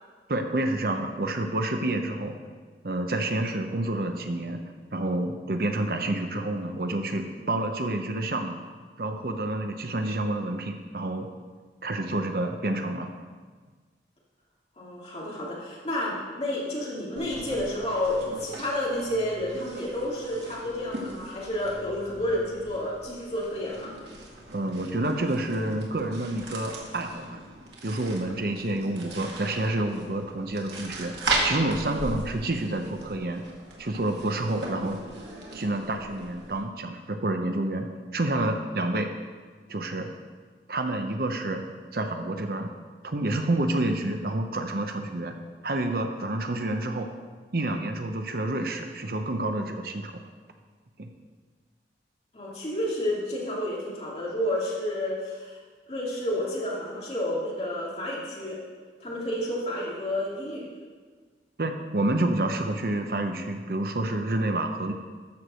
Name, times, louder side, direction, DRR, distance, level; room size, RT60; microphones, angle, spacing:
voice 1, 0.3-2.3 2.8-4.6 4.9-8.6 9.0-11.3 11.8-13.1 24.5-27.4 27.8-31.1 31.4-33.4 33.8-35.0 35.5-37.9 38.1-39.1 39.7-40.1 40.7-41.7 41.9-42.7 43.0-45.3 45.6-47.1 47.5-50.1 51.0-51.1 61.6-64.9, right 1 dB, 55° right, 5 dB, 0.8 m, -28 dB
voice 2, 14.8-23.9 52.3-55.6 55.9-58.6 59.0-60.7, left 1 dB, 35° left, -5 dB, 2.6 m, -30 dB
sound 1, 17.2-36.6, right 2 dB, 85° right, 2.0 m, -37 dB
13.0 x 4.7 x 6.5 m, 1.5 s
head